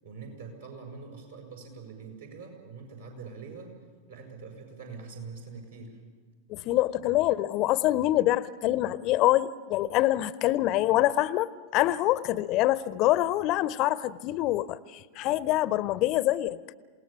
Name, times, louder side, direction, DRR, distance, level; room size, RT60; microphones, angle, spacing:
voice 1, 0.0-3.7 4.1-6.0, right 4 dB, 70° right, 1 dB, 6.5 m, -44 dB
voice 2, 6.5-16.6, left 15 dB, 40° left, 19 dB, 0.6 m, -25 dB
28.0 x 18.5 x 7.3 m, 1.5 s
figure-of-eight pair, 90°, 0 cm